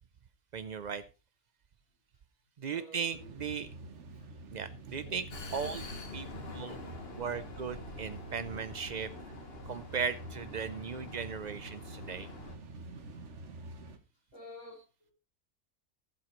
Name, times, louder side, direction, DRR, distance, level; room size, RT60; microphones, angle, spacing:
voice 1, 0.5-1.0 2.6-3.7 4.5-5.3 5.5-5.8 6.1-6.8 7.1-9.1 9.7-12.3, right 6 dB, 85° right, 0.3 m, -37 dB
voice 2, 2.7-3.4 3.8-4.5 5.0-5.2 14.3-15.1, left 1 dB, 60° left, 5.1 m, -52 dB
sound 1, 3.1-14.0, right 2 dB, 55° right, 1.5 m, -47 dB
Vehicle, 5.3-12.6, left 3 dB, 40° left, 1.7 m, -47 dB
18.5 x 7.7 x 3.1 m
omnidirectional pair, 1.6 m